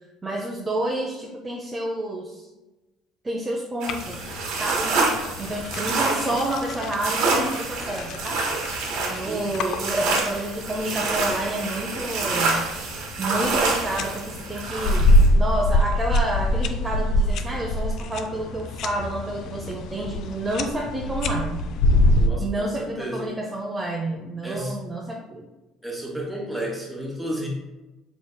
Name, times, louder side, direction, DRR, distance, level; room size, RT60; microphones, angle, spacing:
voice 1, 0.2-2.5 3.2-4.9 5.4-8.5 9.1-12.6 13.2-21.6 22.4-25.4, right 1 dB, 20° right, -1 dB, 0.6 m, -29 dB
sound 1, 3.8-15.3, right 3 dB, 75° right, 1.1 m, -27 dB
sound 2, 3.9-22.3, left 1 dB, 60° left, 0.3 m, -25 dB
voice 2, 22.2-23.3 24.4-24.8 25.8-27.5, right 1 dB, ahead, -2 dB, 1.4 m, -32 dB
4.6 x 4.0 x 2.2 m, 1.1 s
cardioid pair, 110°, 0 cm